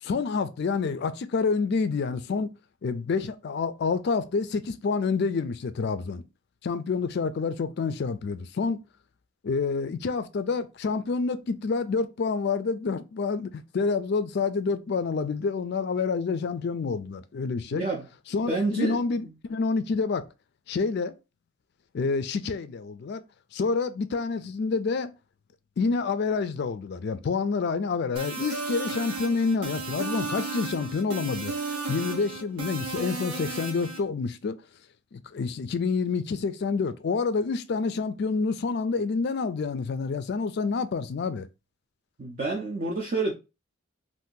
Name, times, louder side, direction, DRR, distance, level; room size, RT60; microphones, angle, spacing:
voice 1, 0.0-2.5 2.8-6.2 6.6-8.8 9.4-17.8 18.3-20.2 20.7-21.1 21.9-23.2 23.5-25.1 25.8-34.5 35.1-41.5, left 4 dB, 50° left, 0.3 m, -28 dB
voice 2, 17.7-18.1 18.5-19.3 42.2-43.3, right 3 dB, 35° right, 0.4 m, -29 dB
sound 1, 28.2-34.0, right 3 dB, 85° right, 0.8 m, -34 dB
2.7 x 2.5 x 3.7 m
head